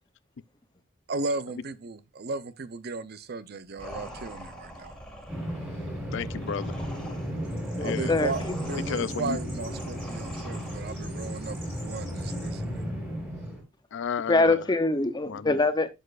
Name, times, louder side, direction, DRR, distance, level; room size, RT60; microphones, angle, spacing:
voice 1, 1.1-4.9 7.8-12.8, right 3 dB, 50° right, 0.6 m, -35 dB
sound 1, 3.8-11.2, equal, 5° left, 2.0 m, -44 dB
Bird vocalization bird call bird song, 5.3-13.6, equal, 10° right, 3.5 m, -34 dB
voice 2, 6.1-6.8 7.8-8.2 8.9-9.4 13.9-14.6 15.3-15.6, left 6 dB, 60° left, 0.4 m, -32 dB
voice 3, 7.8-8.8 14.3-15.9, left 2 dB, 20° left, 0.7 m, -25 dB
11.0 x 6.8 x 2.4 m
head